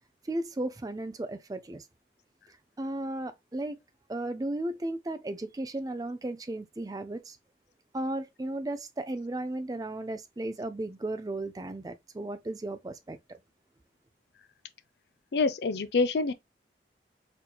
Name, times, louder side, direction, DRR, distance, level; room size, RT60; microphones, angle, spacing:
voice 1, 0.3-1.8 2.8-3.8 4.1-7.4 7.9-13.4, right 1 dB, 20° right, 0.4 m, -35 dB
voice 2, 15.3-16.3, left 3 dB, 70° left, 0.5 m, -26 dB
4.3 x 2.8 x 2.2 m
head